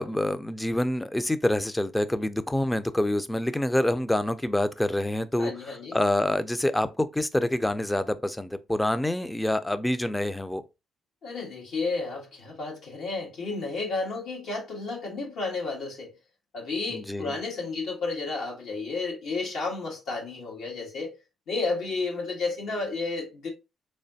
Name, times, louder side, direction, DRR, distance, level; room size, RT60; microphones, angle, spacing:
voice 1, 0.0-10.6 16.9-17.4, left 1 dB, 10° left, 0.4 m, -27 dB
voice 2, 5.4-6.0 11.2-16.1 16.5-21.1 21.5-23.5, left 3 dB, 80° left, 1.5 m, -32 dB
3.7 x 3.2 x 2.7 m
cardioid pair, 90°, 0 cm